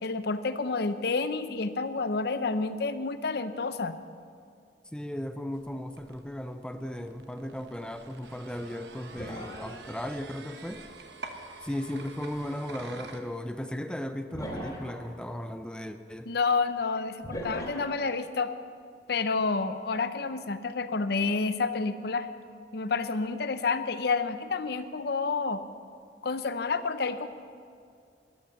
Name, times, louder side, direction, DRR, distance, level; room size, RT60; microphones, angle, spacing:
voice 1, 0.0-4.0 16.3-18.5 19.1-22.3 22.7-25.6 26.2-27.3, left 4 dB, 65° left, 11 dB, 0.7 m, -29 dB
voice 2, 4.9-10.8 11.6-16.3, left 1 dB, 5° left, 8 dB, 0.5 m, -36 dB
sound 1, 5.5-13.2, right 3 dB, 70° right, 1.1 m, -47 dB
sound 2, 9.1-10.1 12.5-12.6 14.3-15.1 17.2-17.8, equal, 20° left, 2.7 m, -38 dB
13.5 x 11.5 x 6.5 m, 2.3 s
head